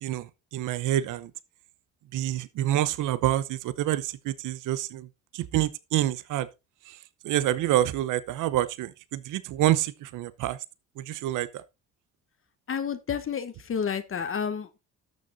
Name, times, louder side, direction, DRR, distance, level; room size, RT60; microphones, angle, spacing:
voice 1, 0.0-1.3 2.1-5.1 5.3-6.5 6.9-7.0 7.2-10.6 11.0-11.6, right 13 dB, 85° right, 0.9 m, -27 dB
voice 2, 12.7-14.8, left 7 dB, 45° left, 1.1 m, -30 dB
12.0 x 6.7 x 3.9 m
cardioid pair, 90°, 30 cm